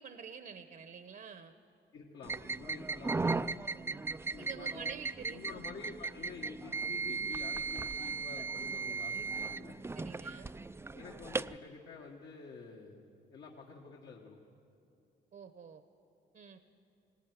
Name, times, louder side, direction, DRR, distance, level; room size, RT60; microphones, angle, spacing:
voice 1, 0.0-1.5 4.4-5.6 9.9-10.6 15.3-15.8 16.3-16.6, right 6 dB, 50° right, 9 dB, 0.9 m, -48 dB
voice 2, 1.9-3.2 4.3-4.9 5.3-9.8 10.9-13.0 13.3-14.4, left 5 dB, 70° left, -1 dB, 1.8 m, -49 dB
sound 1, 2.2-11.6, right 4 dB, 10° right, 0.4 m, -37 dB
18.0 x 16.5 x 9.6 m, 2.6 s
cardioid pair, 90°, 20 cm